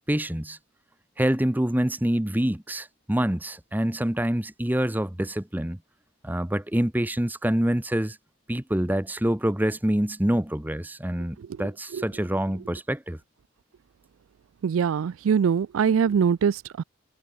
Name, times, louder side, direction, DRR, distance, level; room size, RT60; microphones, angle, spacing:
voice 1, 0.1-0.6 1.2-5.8 6.2-8.2 8.5-13.2, right 1 dB, 10° right, 0.8 m, -26 dB
voice 2, 14.6-16.8, right 7 dB, 85° right, 0.4 m, -23 dB
head